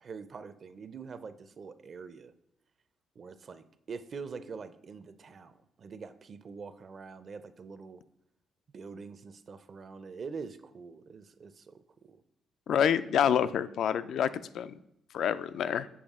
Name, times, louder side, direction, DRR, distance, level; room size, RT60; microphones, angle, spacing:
voice 1, 0.0-2.3 3.2-8.0 8.7-12.2, right 5 dB, 45° right, 12 dB, 0.5 m, -44 dB
voice 2, 12.7-14.3 14.5-14.8 15.1-15.9, left 8 dB, 70° left, 14 dB, 0.3 m, -27 dB
7.1 x 4.9 x 3.6 m, 0.80 s
cardioid pair, 90°, 0 cm